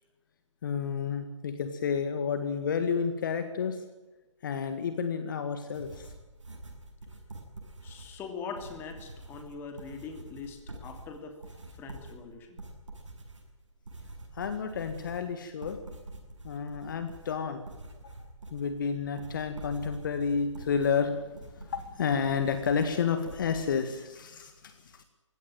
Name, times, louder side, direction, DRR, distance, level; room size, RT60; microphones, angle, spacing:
voice 1, 0.6-3.8 4.4-6.1 14.3-15.8 16.4-17.6 18.0-18.1 18.5-25.0, left 6 dB, 40° left, 8 dB, 1.8 m, -31 dB
sound 1, 5.7-23.7, right 2 dB, 70° right, 7.9 m, -46 dB
voice 2, 7.8-11.3 11.7-12.6, left 5 dB, 15° left, 5 dB, 2.9 m, -42 dB
22.5 x 17.0 x 9.1 m, 1.1 s
figure-of-eight pair, 140°, 16 cm